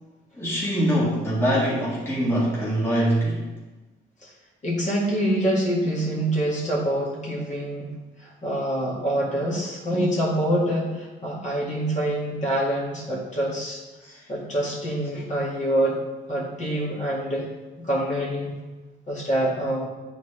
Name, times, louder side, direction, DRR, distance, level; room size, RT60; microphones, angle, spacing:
voice 1, 0.4-3.4 14.0-14.2, equal, 10° left, -6 dB, 1.9 m, -23 dB
voice 2, 4.6-7.9 8.2-13.8 14.3-16.0 16.3-17.5 17.8-18.6 19.1-19.9, right 1 dB, 35° left, -5 dB, 2.0 m, -25 dB
9.2 x 4.2 x 3.3 m, 1.2 s
cardioid pair, 90°, 20 cm